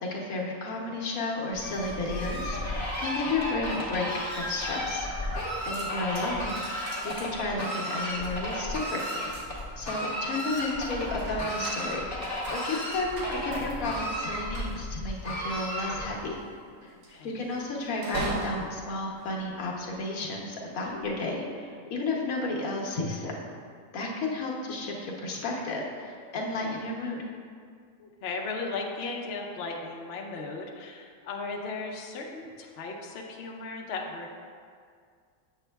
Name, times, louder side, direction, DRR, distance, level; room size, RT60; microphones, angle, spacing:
voice 1, 0.0-5.1 5.6-6.6 7.0-9.2 9.8-16.4 16.8-16.9 17.2-23.3 23.9-27.2, left 2 dB, 75° left, -2 dB, 1.3 m, -32 dB
Fowl, 1.5-16.3, equal, 15° left, 0.9 m, -33 dB
sound 1, 4.8-5.3 5.6-20.2 20.7-21.1, right 2 dB, 80° right, 1.3 m, -42 dB
voice 2, 16.9-17.3 28.0-34.3, left 3 dB, 60° left, 1 dB, 0.7 m, -36 dB
7.1 x 7.0 x 2.2 m, 2.1 s
omnidirectional pair, 1.5 m